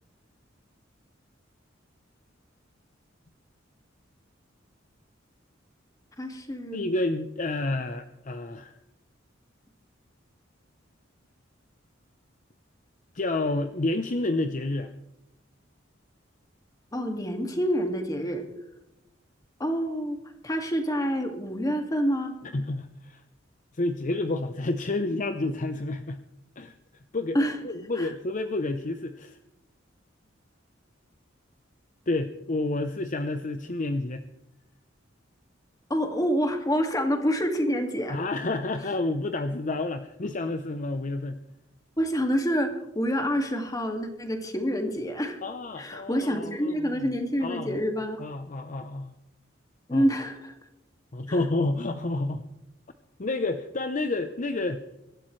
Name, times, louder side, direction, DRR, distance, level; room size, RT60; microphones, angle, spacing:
voice 1, 6.2-6.9 16.9-18.4 19.6-20.2 20.4-22.3 27.3-27.6 28.0-28.1 35.9-38.2 42.0-45.4 45.8-48.2 49.9-50.5 51.3-51.4, equal, 20° left, 4 dB, 2.1 m, -27 dB
voice 2, 6.7-8.8 13.1-14.9 22.4-23.2 23.7-26.2 26.6-26.7 27.1-27.4 27.6-29.4 32.1-34.2 38.1-41.4 45.4-47.1 47.4-47.8 48.2-49.1 49.9-50.1 51.1-52.4 53.2-54.8, left 2 dB, 40° left, 8 dB, 0.7 m, -29 dB
24.5 x 13.0 x 3.2 m, 0.90 s
head